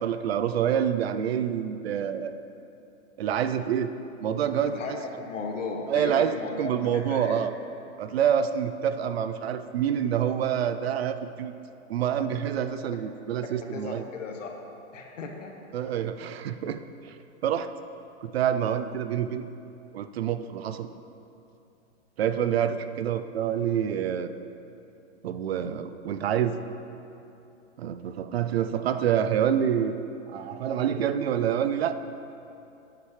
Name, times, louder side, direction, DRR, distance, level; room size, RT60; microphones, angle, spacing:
voice 1, 0.0-2.4 3.2-3.9 4.2-4.8 5.9-7.5 8.0-11.6 11.9-14.0 15.7-17.1 17.4-17.7 18.2-19.4 19.9-20.9 22.2-24.3 25.2-26.6 27.8-30.0 30.3-31.9, right 9 dB, 55° right, 11 dB, 0.5 m, -27 dB
voice 2, 4.6-7.4 13.7-14.5 14.9-15.5, left 4 dB, 85° left, 2 dB, 1.4 m, -35 dB
10.0 x 8.6 x 3.2 m, 2.8 s
hypercardioid pair, 165°, 37 cm